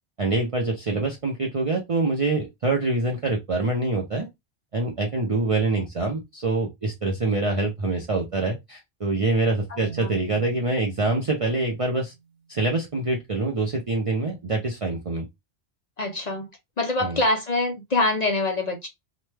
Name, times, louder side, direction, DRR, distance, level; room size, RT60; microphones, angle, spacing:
voice 1, 0.2-4.3 4.7-12.1 12.5-15.3 17.0-17.2, right 2 dB, 40° right, 0.6 m, -25 dB
Marimba xylophone, 9.8-12.8, right 6 dB, 70° right, 1.1 m, -45 dB
voice 2, 16.0-16.5 16.8-18.9, left 2 dB, 45° left, 0.6 m, -24 dB
2.9 x 2.2 x 3.2 m
omnidirectional pair, 1.1 m